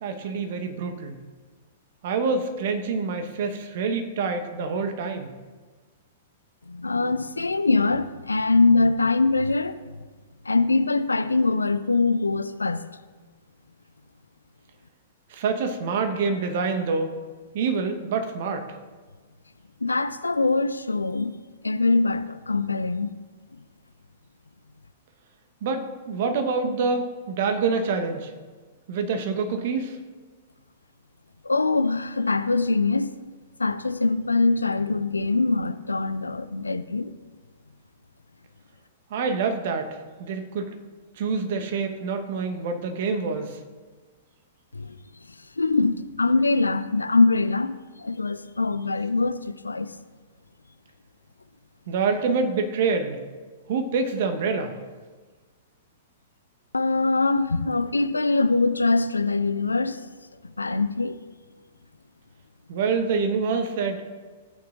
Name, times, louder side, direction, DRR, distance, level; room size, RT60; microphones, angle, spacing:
voice 1, 0.0-1.2 2.0-5.3 15.3-17.2 17.5-18.7 25.6-28.3 28.9-30.0 39.1-40.7 41.2-43.6 51.9-53.2 53.7-54.7 62.7-64.0, right 4 dB, 50° right, 1.1 m, -26 dB
voice 2, 6.7-9.8 10.5-12.9 19.8-21.4 21.6-23.2 31.4-33.1 33.6-37.1 44.7-45.0 45.6-49.9 56.7-60.0 60.6-61.2, left 3 dB, 75° left, 0.4 m, -23 dB
16.0 x 8.7 x 2.5 m
figure-of-eight pair, 105°, 0 cm